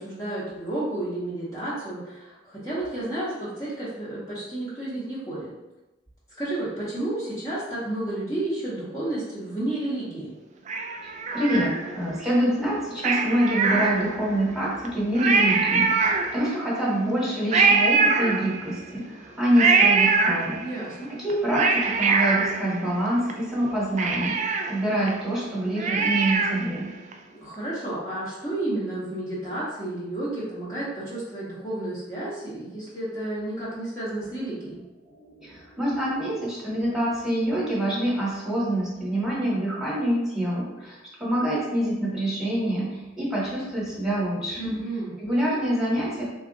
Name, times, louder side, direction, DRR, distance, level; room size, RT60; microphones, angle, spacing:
voice 1, 0.0-5.5 6.4-10.3 20.6-21.1 27.4-34.8 44.6-45.2, right 1 dB, 20° left, -10 dB, 0.8 m, -31 dB
Cat, 10.7-12.1 13.0-14.4 14.8-14.9 15.2-16.7 17.5-18.9 19.6-20.8 21.3-23.3 23.6-23.7 24.0-26.8 27.1-27.2, right 4 dB, 40° right, 0.3 m, -23 dB
voice 2, 11.0-20.6 21.2-24.4 24.7-26.9 35.4-44.7 45.2-46.2, right 1 dB, 5° right, -7 dB, 1.1 m, -26 dB
3.4 x 2.3 x 3.8 m, 1.0 s
head